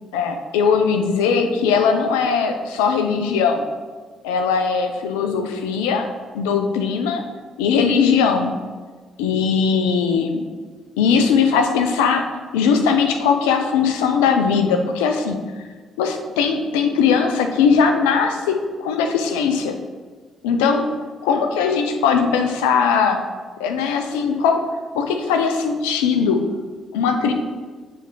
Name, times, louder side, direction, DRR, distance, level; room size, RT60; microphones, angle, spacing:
voice 1, 0.1-3.7 4.2-6.1 6.3-7.2 7.6-8.5 9.2-10.4 11.0-12.3 12.5-15.4 16.0-19.7 20.4-20.9 21.2-23.2 23.6-24.6 24.9-26.4 26.9-27.3, left 6 dB, 85° left, 5 dB, 0.5 m, -19 dB
7.0 x 3.4 x 4.6 m, 1.5 s
hypercardioid pair, 50°, 0 cm